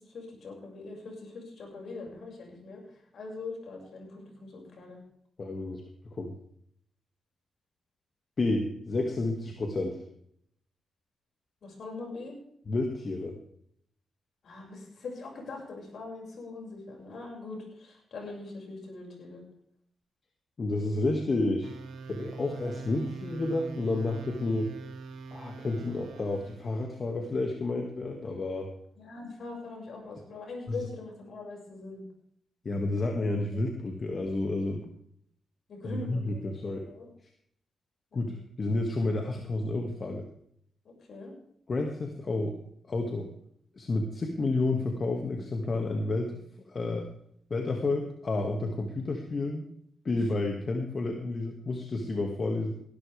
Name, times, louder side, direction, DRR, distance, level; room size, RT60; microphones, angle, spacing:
voice 1, 0.1-2.8 3.1-5.0 11.6-12.4 14.4-19.4 29.0-32.0 35.7-37.1 38.1-38.3 40.8-41.3, left 3 dB, 70° left, 0 dB, 6.4 m, -42 dB
voice 2, 5.4-5.8 6.1-6.3 8.4-10.0 12.7-13.4 20.6-21.7 22.1-24.7 25.3-28.7 30.7-30.8 32.6-34.9 35.8-36.9 38.1-40.2 41.7-42.6 42.9-43.3 43.8-46.4 46.7-47.1 47.5-49.7 50.0-52.7, left 2 dB, 50° left, 3 dB, 2.2 m, -30 dB
sound 1, 21.6-26.9, right 4 dB, 80° right, 1.8 m, -43 dB
18.5 x 12.5 x 3.6 m, 0.68 s
supercardioid pair, 50°, 0 cm